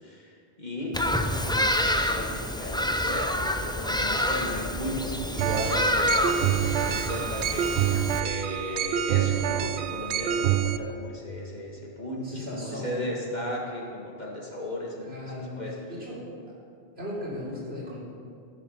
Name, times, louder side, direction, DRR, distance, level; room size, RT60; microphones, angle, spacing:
voice 1, 0.0-0.3 0.6-15.7, left 1 dB, 45° left, -2 dB, 1.9 m, -35 dB
Bird vocalization bird call bird song, 0.9-8.2, left 1 dB, 5° left, 0.3 m, -28 dB
sound 1, 5.4-10.8, right 11 dB, 85° right, 0.9 m, -27 dB
voice 2, 12.2-13.1 15.0-15.6 15.9-16.2 17.0-18.0, left 1 dB, 70° right, -7 dB, 3.8 m, -36 dB
15.0 x 8.0 x 5.6 m, 2.3 s
omnidirectional pair, 1.1 m